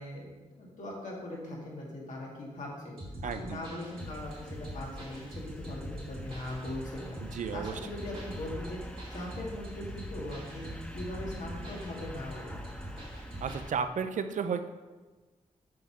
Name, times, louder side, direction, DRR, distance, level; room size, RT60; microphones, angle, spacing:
voice 1, 0.0-2.9 3.2-7.2 7.5-10.7 10.9-12.9, left 1 dB, 70° left, -3 dB, 2.3 m, -40 dB
sound 1, 3.0-13.6, equal, 50° right, 2.4 m, -43 dB
voice 2, 3.2-3.6 7.2-7.8 13.4-14.7, right 6 dB, 75° right, 9 dB, 0.5 m, -33 dB
sound 2, 4.0-13.7, equal, 10° left, 0.8 m, -46 dB
7.7 x 3.6 x 6.1 m, 1.3 s
cardioid pair, 60°, 13 cm